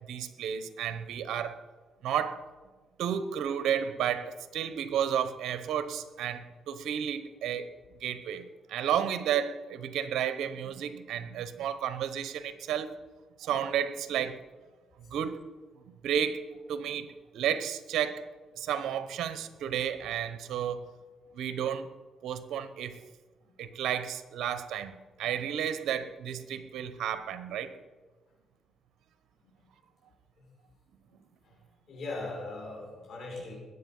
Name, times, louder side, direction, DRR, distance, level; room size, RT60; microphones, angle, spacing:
voice 1, 0.1-1.6 2.0-2.4 3.0-7.7 8.0-12.9 13.4-14.4 15.1-15.4 16.0-18.3 18.5-20.9 21.3-21.9 22.2-23.0 23.6-27.7, right 9 dB, 80° right, 1.0 m, -32 dB
voice 2, 31.9-33.5, left 2 dB, 60° left, 5.1 m, -40 dB
20.5 x 8.0 x 5.5 m
cardioid pair, 90°, 0 cm